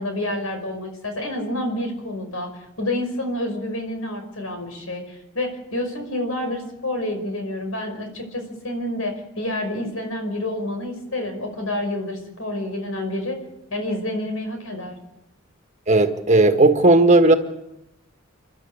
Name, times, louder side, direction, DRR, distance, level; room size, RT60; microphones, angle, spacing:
voice 1, 0.0-2.5 2.8-13.4 13.7-15.0, left 1 dB, 80° left, 6 dB, 5.5 m, -28 dB
voice 2, 15.9-17.3, right 2 dB, 35° right, 6 dB, 1.6 m, -15 dB
29.0 x 12.0 x 8.4 m, 0.90 s
head